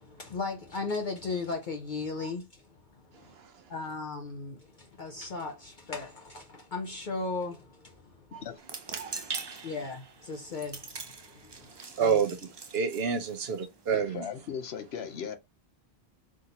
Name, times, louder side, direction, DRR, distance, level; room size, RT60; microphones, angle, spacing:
voice 1, 0.0-2.7 2.9-3.3 3.7-8.4 9.6-12.2, left 3 dB, 55° left, 0.8 m, -37 dB
sound 1, 8.6-13.9, right 4 dB, 35° right, 0.5 m, -42 dB
voice 2, 12.0-12.4 12.7-14.3, right 6 dB, 75° right, 1.1 m, -28 dB
voice 3, 13.9-15.4, left 7 dB, 80° left, 1.0 m, -37 dB
3.9 x 3.7 x 2.8 m
omnidirectional pair, 1.1 m